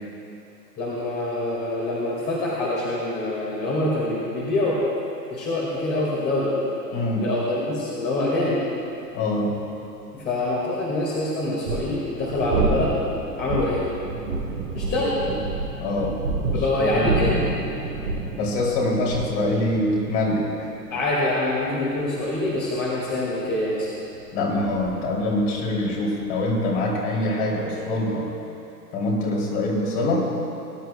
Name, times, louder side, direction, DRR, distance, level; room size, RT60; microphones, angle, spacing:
voice 1, 0.8-4.8 5.3-6.5 7.2-8.6 10.2-12.9 13.4-13.8 14.7-15.2 16.5-17.4 20.9-23.9, left 2 dB, 20° left, -6 dB, 1.9 m, -25 dB
voice 2, 6.9-7.3 9.1-9.5 15.8-16.2 16.8-17.1 18.4-20.5 24.3-28.3 28.9-30.3, left 1 dB, 40° left, -3 dB, 2.9 m, -24 dB
sound 1, 11.7-27.0, right 3 dB, 35° right, 1.3 m, -30 dB
21.0 x 11.0 x 2.3 m, 2.8 s
figure-of-eight pair, 105°, 49 cm